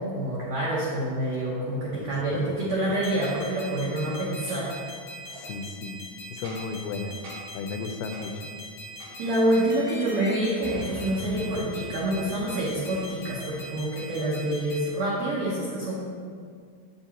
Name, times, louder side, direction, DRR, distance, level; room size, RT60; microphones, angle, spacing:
voice 1, 0.0-4.7 9.2-15.9, right 1 dB, 85° right, -6 dB, 1.5 m, -27 dB
voice 2, 1.9-2.6 5.4-6.0 6.3-7.2 7.5-8.4, left 4 dB, 85° left, 4 dB, 2.6 m, -35 dB
sound 1, 3.0-14.9, equal, 70° left, 2.9 m, -42 dB
Boom, 4.4-4.5 5.3-5.5 6.4-6.8 7.2-7.6 8.1-8.3 9.0-9.4 10.6-13.3, right 1 dB, 60° right, 2.8 m, -42 dB
8.0 x 7.6 x 2.9 m, 2.1 s
omnidirectional pair, 4.6 m